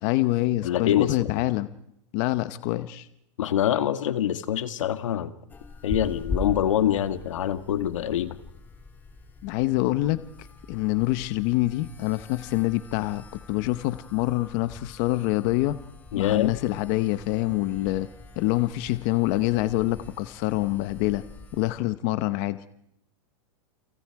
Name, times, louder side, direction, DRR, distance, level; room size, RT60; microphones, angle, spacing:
voice 1, 0.0-1.7 2.1-3.1 9.4-15.8 16.2-18.1 18.4-21.2 21.5-22.6, left 17 dB, 35° left, 13 dB, 0.9 m, -26 dB
voice 2, 0.6-1.4 3.4-5.3 5.8-8.4 16.1-16.6, left 10 dB, 85° left, 10 dB, 1.9 m, -25 dB
sound 1, 5.5-21.7, left 3 dB, 10° left, 3.1 m, -41 dB
29.0 x 28.5 x 4.8 m, 0.76 s
supercardioid pair, 165°, 16 cm